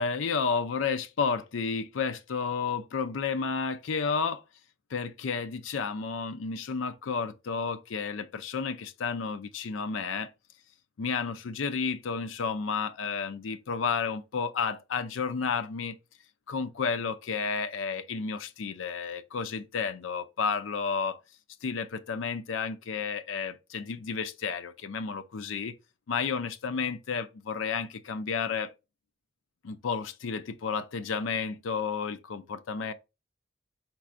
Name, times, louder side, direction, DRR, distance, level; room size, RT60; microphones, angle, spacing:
voice 1, 0.0-4.4 4.9-10.3 11.0-16.0 16.5-21.2 21.6-25.8 26.1-28.7 29.6-32.9, left 5 dB, 85° left, 0.5 m, -31 dB
4.6 x 4.2 x 2.5 m
head